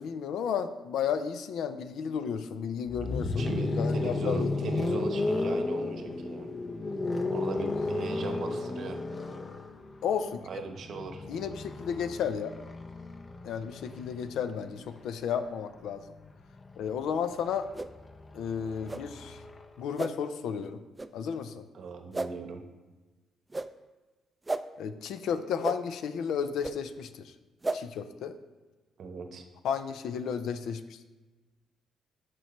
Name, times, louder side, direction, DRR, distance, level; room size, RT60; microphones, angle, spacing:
voice 1, 0.0-3.5 3.8-4.6 10.0-10.4 11.3-12.5 13.4-16.0 16.8-17.7 18.3-19.4 19.8-20.8 21.1-21.6 24.8-27.3 27.7-28.3 29.6-31.0, left 7 dB, 80° left, 10 dB, 0.5 m, -33 dB
sound 1, 2.9-14.8 16.1-19.7, left 2 dB, 35° left, 0.6 m, -34 dB
voice 2, 3.0-6.5 7.3-9.0 10.4-11.3 21.7-22.6 29.0-29.4, right 4 dB, 60° right, 6 dB, 0.9 m, -38 dB
sound 2, 17.7-17.9 18.9-19.0 20.0-20.1 21.0-21.1 22.1-22.3 23.5-23.7 24.5-24.6 25.6-25.8 26.6-26.7 27.6-27.8, right 2 dB, 20° right, 0.3 m, -32 dB
13.5 x 4.6 x 3.1 m, 1.2 s
cardioid pair, 90°, 0 cm